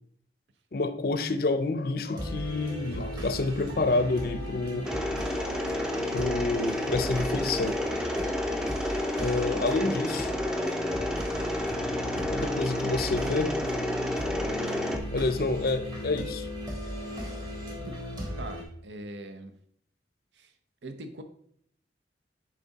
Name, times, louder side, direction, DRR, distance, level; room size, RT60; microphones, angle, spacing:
voice 1, 0.7-4.9 6.1-7.8 9.2-10.3 12.3-13.6 15.1-16.5, left 3 dB, 55° left, 0.5 m, -28 dB
sound 1, 2.1-18.6, equal, 20° right, 1.4 m, -36 dB
Mechanisms, 4.8-15.0, left 1 dB, 5° right, 0.5 m, -31 dB
voice 2, 18.4-19.5 20.3-20.5 20.8-21.2, right 2 dB, 75° right, 0.7 m, -41 dB
7.3 x 4.9 x 4.0 m
head